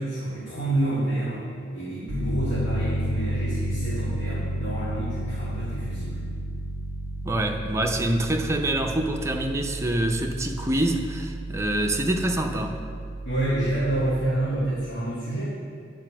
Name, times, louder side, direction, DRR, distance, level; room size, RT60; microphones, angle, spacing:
voice 1, 0.0-1.4 1.7-6.3 13.3-15.4, right 1 dB, 70° left, -11 dB, 2.2 m, -28 dB
Piano, 2.1-14.3, equal, 90° left, 2.5 m, -32 dB
voice 2, 7.2-12.8, right 1 dB, 15° right, 3 dB, 0.6 m, -26 dB
9.6 x 4.9 x 6.0 m, 2.2 s
head